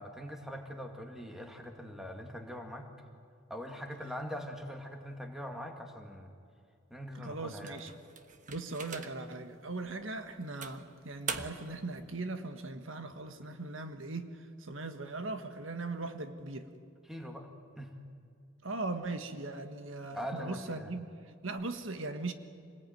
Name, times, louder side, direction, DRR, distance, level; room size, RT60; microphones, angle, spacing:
voice 1, 0.0-2.9 3.5-6.3 6.9-7.8 17.1-17.5 17.8-18.0 20.1-20.9, equal, ahead, 3 dB, 2.2 m, -42 dB
voice 2, 7.1-7.9 8.5-16.7 18.6-21.1 21.4-22.3, right 2 dB, 75° right, 8 dB, 1.6 m, -39 dB
sound 1, 7.6-9.4 9.9-10.0 10.6-11.8, right 6 dB, 40° right, 1.3 m, -42 dB
26.5 x 20.0 x 9.3 m, 2.4 s
head